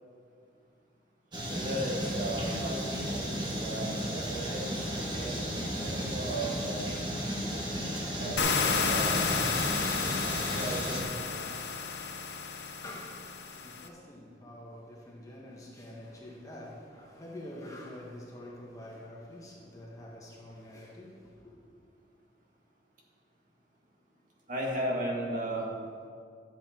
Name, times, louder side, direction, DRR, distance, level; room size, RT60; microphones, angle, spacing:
sound 1, 1.3-11.0, equal, 25° right, 1.7 m, -34 dB
voice 1, 1.5-7.0 8.2-9.2 10.4-11.7 20.7-20.8 24.5-25.7, right 1 dB, 45° right, 2.0 m, -36 dB
sound 2, 8.4-13.9, left 5 dB, 65° left, 0.8 m, -31 dB
voice 2, 12.4-21.6, left 1 dB, 20° left, 1.6 m, -47 dB
12.5 x 7.8 x 4.6 m
head